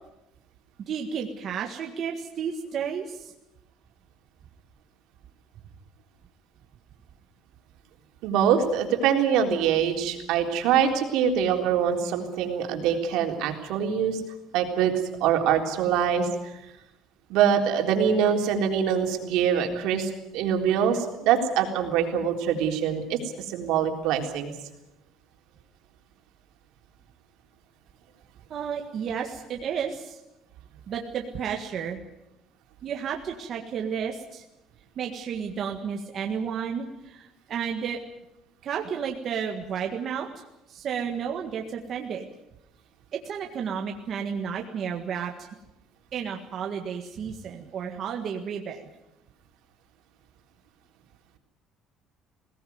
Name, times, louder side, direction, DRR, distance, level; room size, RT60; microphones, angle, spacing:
voice 1, 0.8-3.3 28.5-30.2 30.9-32.0 32.8-34.4 35.0-38.0 38.6-40.3 40.7-42.3 43.1-45.3 46.1-48.8, right 7 dB, 40° right, 2 dB, 1.7 m, -32 dB
voice 2, 8.2-14.2 14.5-14.9 15.2-16.3 17.3-23.2 23.5-24.5, right 8 dB, 75° right, 3 dB, 3.7 m, -24 dB
21.5 x 18.0 x 9.5 m, 0.92 s
cardioid pair, 165°, 0 cm